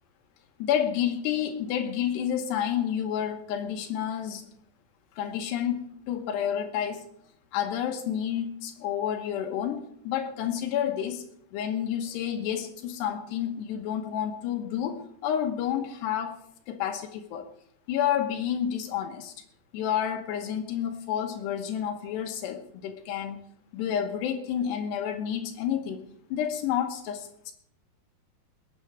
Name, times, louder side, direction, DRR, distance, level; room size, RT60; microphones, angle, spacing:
voice 1, 0.6-4.4 5.2-7.0 7.5-11.2 11.5-16.4 16.7-17.5 17.9-19.3 19.7-23.4 23.7-27.5, left 9 dB, 80° left, 5 dB, 3.2 m, -30 dB
20.5 x 9.1 x 4.7 m, 0.68 s
omnidirectional pair, 4.8 m